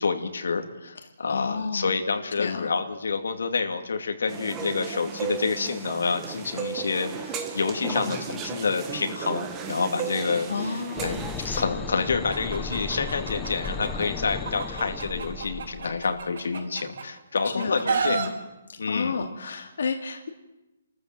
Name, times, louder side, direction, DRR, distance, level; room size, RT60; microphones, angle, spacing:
voice 1, 0.0-18.3 18.8-19.1, left 4 dB, 85° left, 5 dB, 2.6 m, -28 dB
voice 2, 1.3-1.9 2.4-2.7 7.9-8.2 10.5-11.1 17.6-17.7 18.1-18.3 18.7-20.3, left 5 dB, 65° left, 4 dB, 2.2 m, -31 dB
sound 1, 4.3-11.6, right 7 dB, 15° right, 1.4 m, -35 dB
sound 2, 11.0-16.3, left 5 dB, 10° left, 0.7 m, -35 dB
Chicken rooster, 12.3-14.1 14.4-17.0 17.4-18.3, right 5 dB, 55° right, 4.9 m, -30 dB
29.5 x 14.0 x 7.7 m, 1.0 s
hypercardioid pair, 175°, 0 cm